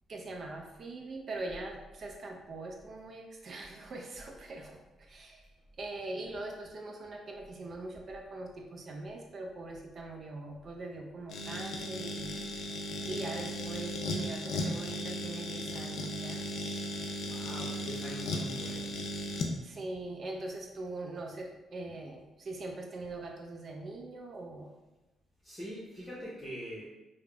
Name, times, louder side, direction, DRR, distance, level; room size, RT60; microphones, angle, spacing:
voice 1, 0.1-5.5 5.8-12.3 13.1-16.4 19.6-24.8, right 2 dB, 50° right, 1 dB, 0.5 m, -42 dB
sound 1, 11.3-19.5, left 1 dB, 70° left, 0.4 m, -36 dB
voice 2, 17.3-19.0 25.4-26.9, equal, 15° left, -9 dB, 0.7 m, -43 dB
3.3 x 2.0 x 2.3 m, 1.1 s
cardioid pair, 90°, 0 cm